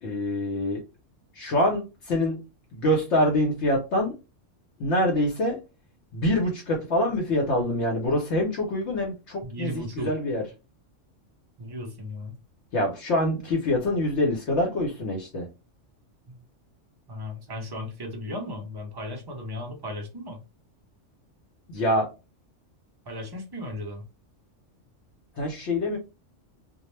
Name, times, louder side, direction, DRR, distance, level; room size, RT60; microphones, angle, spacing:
voice 1, 0.0-0.8 1.3-2.4 2.7-4.1 4.8-5.6 6.1-10.4 12.7-15.5 21.7-22.1 25.4-26.0, left 1 dB, 70° left, 0.9 m, -25 dB
voice 2, 9.4-10.1 11.6-12.4 16.3-16.4 17.1-20.4 23.1-24.0, left 1 dB, 40° right, 0.3 m, -36 dB
2.2 x 2.0 x 3.0 m
omnidirectional pair, 1.3 m